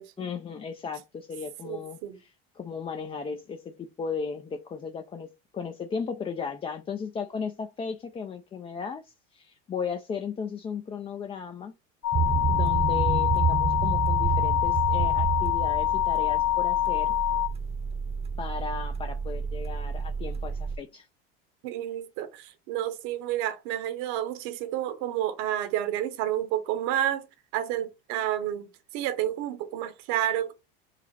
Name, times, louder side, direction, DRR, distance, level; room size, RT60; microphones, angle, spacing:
voice 1, 0.2-11.7 12.5-17.1 18.4-21.1, left 5 dB, 20° left, 0.4 m, -36 dB
voice 2, 1.6-2.2 21.6-27.2 27.5-28.7 28.9-30.5, right 12 dB, 65° right, 1.0 m, -30 dB
sound 1, 12.0-17.5, left 14 dB, 65° left, 0.7 m, -25 dB
sound 2, 12.1-20.8, right 5 dB, 20° right, 0.7 m, -29 dB
4.9 x 2.0 x 4.0 m
supercardioid pair, 105°, 30 cm